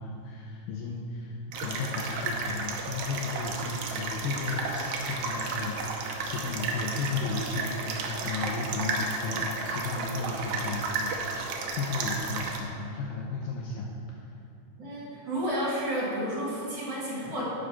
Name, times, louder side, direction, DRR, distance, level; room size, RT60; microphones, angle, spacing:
voice 1, 0.0-13.9 14.2-14.3, left 4 dB, 80° left, -1 dB, 2.0 m, -34 dB
sound 1, 1.5-12.6, right 3 dB, 80° right, 1.6 m, -33 dB
voice 2, 14.8-17.4, equal, 35° right, -7 dB, 2.1 m, -31 dB
11.0 x 5.1 x 5.8 m, 2.6 s
omnidirectional pair, 4.4 m